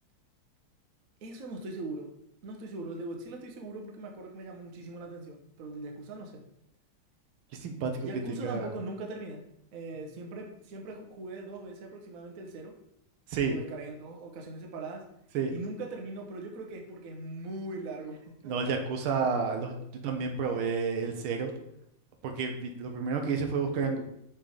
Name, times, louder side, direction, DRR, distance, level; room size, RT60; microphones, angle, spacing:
voice 1, 1.2-2.1 2.4-6.4 8.0-9.4 9.7-12.8 13.3-15.1 15.5-18.7, right 2 dB, 55° right, 2 dB, 1.1 m, -40 dB
voice 2, 7.6-8.7 13.3-13.5 15.3-15.5 18.4-19.8 20.0-21.5 22.2-24.0, right 5 dB, 85° right, 4 dB, 1.6 m, -30 dB
5.8 x 3.4 x 5.0 m, 0.75 s
omnidirectional pair, 2.3 m